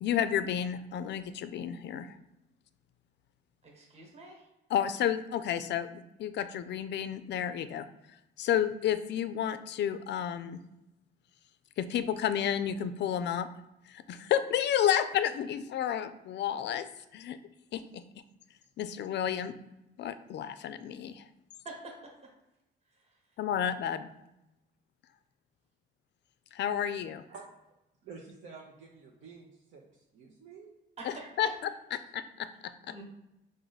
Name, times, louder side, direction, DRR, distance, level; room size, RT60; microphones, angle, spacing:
voice 1, 0.0-2.2 4.7-7.9 8.4-10.6 11.8-13.5 13.9-16.9 17.1-17.4 17.7-18.0 18.8-19.6 20.0-21.2 23.4-24.1 26.5-27.2 31.0-31.5 31.9-32.7, left 10 dB, 60° left, 12 dB, 0.4 m, -31 dB
voice 2, 3.6-4.4 21.6-22.1 31.0-31.3 32.9-33.0, right 2 dB, 35° right, -1 dB, 1.1 m, -46 dB
voice 3, 28.0-30.7, right 5 dB, 80° right, -2 dB, 0.7 m, -50 dB
4.9 x 2.6 x 4.0 m, 0.90 s
cardioid pair, 90°, 20 cm